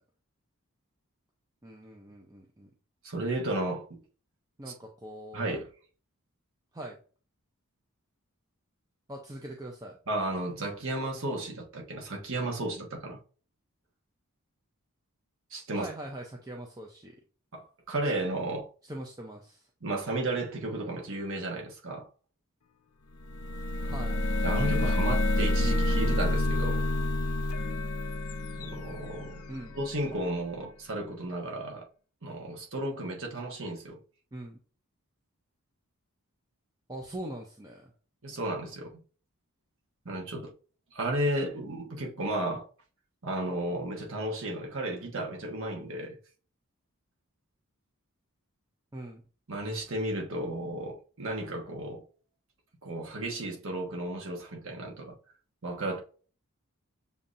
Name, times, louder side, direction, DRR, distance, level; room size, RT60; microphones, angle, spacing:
voice 1, 1.6-2.7 4.6-5.6 6.7-7.0 9.1-10.0 15.7-17.2 18.9-19.6 23.8-24.2 24.8-25.0 29.5-29.8 34.3-34.6 36.9-37.9 48.9-49.2, right 1 dB, 15° right, 0.6 m, -42 dB
voice 2, 3.0-4.0 4.7-4.8 5.3-5.7 10.1-13.2 15.5-15.9 17.5-18.7 19.8-22.1 24.4-26.8 28.6-29.4 29.7-31.9 32.2-34.0 38.2-39.0 40.0-40.5 40.9-42.7 43.2-46.2 49.5-52.0 52.8-55.2 55.6-56.0, right 1 dB, 60° right, 1.2 m, -33 dB
sound 1, 23.2-29.9, left 1 dB, 70° left, 0.6 m, -28 dB
6.9 x 2.7 x 2.5 m
head